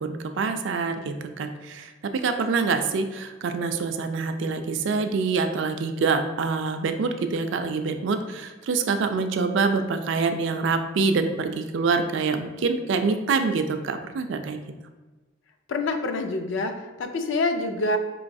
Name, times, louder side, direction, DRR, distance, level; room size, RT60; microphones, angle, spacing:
voice 1, 0.0-14.6, right 4 dB, 65° right, 7 dB, 0.3 m, -26 dB
voice 2, 15.7-18.0, left 2 dB, 65° left, 6 dB, 0.4 m, -26 dB
4.5 x 3.1 x 2.6 m, 1.2 s
head